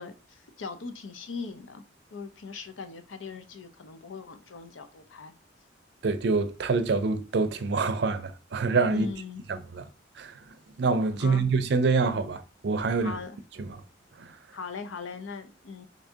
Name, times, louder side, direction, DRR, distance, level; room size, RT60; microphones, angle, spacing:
voice 1, 0.0-1.8 2.1-5.3 8.9-9.4 11.2-11.4 13.0-13.4 14.5-15.9, left 4 dB, 85° left, 0.6 m, -39 dB
voice 2, 6.0-9.1 9.5-9.8 10.2-10.4 10.8-13.1 13.7-13.8 14.2-14.3, right 4 dB, 60° right, 0.5 m, -26 dB
4.0 x 2.7 x 3.5 m
head